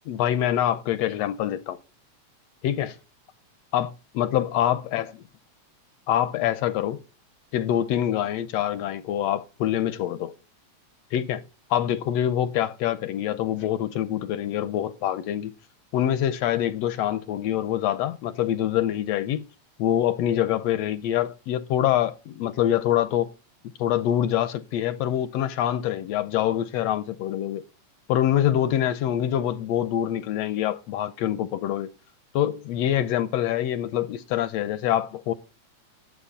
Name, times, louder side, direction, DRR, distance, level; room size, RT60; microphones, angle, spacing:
voice 1, 0.1-1.8 2.6-3.0 3.7-5.1 6.1-7.0 7.5-10.3 11.1-11.4 11.7-15.5 15.9-19.4 19.8-23.3 23.8-27.6 28.1-31.9 32.3-35.3, left 11 dB, 75° left, 1.7 m, -25 dB
11.5 x 8.0 x 5.5 m
omnidirectional pair, 3.3 m